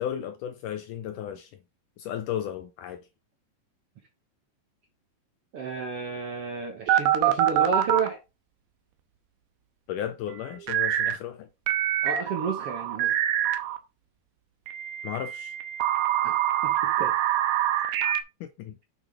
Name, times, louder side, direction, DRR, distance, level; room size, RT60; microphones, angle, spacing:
voice 1, 0.0-1.5 2.0-3.0 9.9-11.5 15.0-15.5 18.4-18.8, left 10 dB, 75° left, 1.9 m, -34 dB
voice 2, 5.5-8.2 12.0-13.1 16.2-16.4 16.6-17.1, right 5 dB, 55° right, 1.7 m, -31 dB
sound 1, 6.9-8.1 10.7-11.2 11.7-13.8 14.7-18.2, right 12 dB, 75° right, 2.6 m, -25 dB
9.0 x 6.2 x 3.5 m
omnidirectional pair, 4.3 m